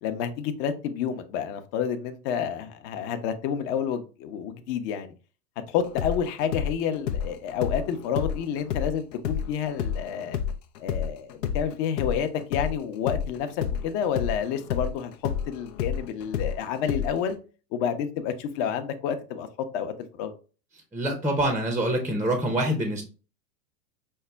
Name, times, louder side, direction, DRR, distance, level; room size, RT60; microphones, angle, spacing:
voice 1, 0.0-5.1 5.7-10.4 10.8-15.1 15.5-17.4 17.7-19.5 19.7-20.3, left 8 dB, 45° left, 0.8 m, -29 dB
sound 1, 5.8-12.7 13.1-17.3, left 8 dB, 80° left, 0.7 m, -30 dB
voice 2, 20.9-23.0, right 1 dB, 5° right, 0.5 m, -25 dB
5.5 x 2.1 x 3.3 m
hypercardioid pair, 110°, 48 cm